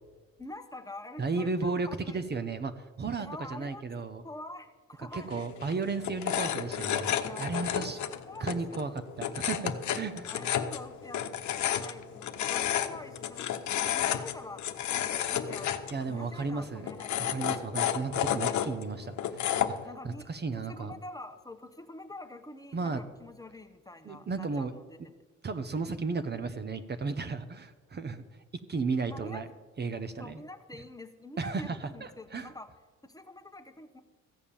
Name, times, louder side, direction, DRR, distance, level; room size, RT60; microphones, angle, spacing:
voice 1, 0.4-2.2 3.2-3.8 4.2-5.8 6.4-6.5 7.2-9.3 10.3-14.6 14.9-17.5 19.8-20.3 20.6-25.0 29.1-29.6 30.2-32.7 33.0-34.0, left 2 dB, 10° left, 6 dB, 1.0 m, -46 dB
voice 2, 1.2-4.2 5.1-8.0 8.4-10.3 15.9-16.9 17.2-19.8 20.0-20.9 22.7-23.0 24.0-24.7 25.4-28.2 28.7-29.5 29.8-30.4 31.4-32.5, right 4 dB, 35° right, 10 dB, 0.8 m, -34 dB
sound 1, 5.1-19.8, left 10 dB, 70° left, 0.9 m, -32 dB
15.0 x 7.1 x 7.0 m, 1.4 s
cardioid pair, 90°, 30 cm